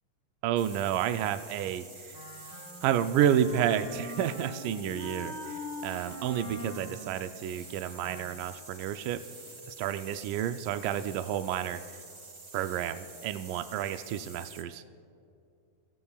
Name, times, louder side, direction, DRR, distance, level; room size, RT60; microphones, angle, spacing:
voice 1, 0.4-2.2 2.8-9.2 9.7-11.8 12.5-14.8, right 10 dB, 80° right, 9 dB, 2.0 m, -30 dB
sound 1, 0.6-14.7, right 3 dB, 40° right, 1.4 m, -48 dB
Wind instrument woodwind instrument, 2.1-8.7, left 1 dB, 20° left, 4.6 m, -43 dB
27.5 x 17.5 x 2.4 m, 2.5 s
omnidirectional pair, 4.1 m